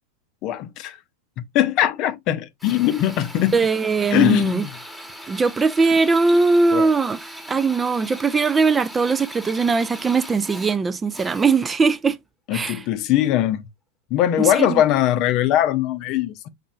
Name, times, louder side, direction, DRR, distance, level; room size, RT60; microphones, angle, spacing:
voice 1, 0.4-1.0 1.4-3.6 4.1-4.7 6.7-6.9 12.5-13.7 14.1-16.3, left 12 dB, 40° left, 0.6 m, -21 dB
Drill, 2.6-11.9, equal, ahead, 1.1 m, -39 dB
voice 2, 3.5-4.6 5.3-12.2 12.5-12.8 14.4-14.8, right 4 dB, 15° right, 0.3 m, -20 dB
5.2 x 4.2 x 2.4 m
figure-of-eight pair, 90°, 0 cm